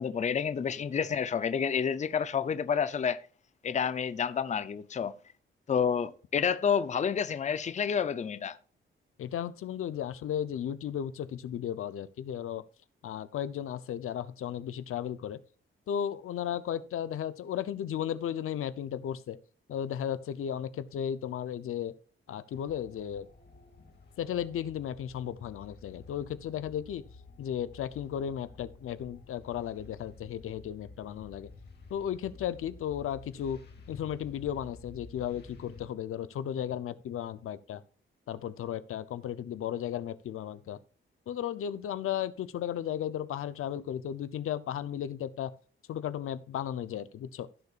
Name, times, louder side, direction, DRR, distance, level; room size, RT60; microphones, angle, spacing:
voice 1, 0.0-3.2 3.6-5.1 5.7-8.6, left 7 dB, 35° left, 0.6 m, -29 dB
voice 2, 9.2-12.6 13.0-15.4 15.9-19.4 19.7-21.9 22.3-23.3 24.2-27.0 27.4-31.5 31.9-33.6 33.9-37.8 38.3-40.8 41.3-45.5 45.9-47.5, left 9 dB, 85° left, 0.7 m, -35 dB
sound 1, 22.5-35.9, left 4 dB, 50° left, 2.4 m, -52 dB
16.5 x 6.8 x 2.5 m
wide cardioid pair, 150°, 21 cm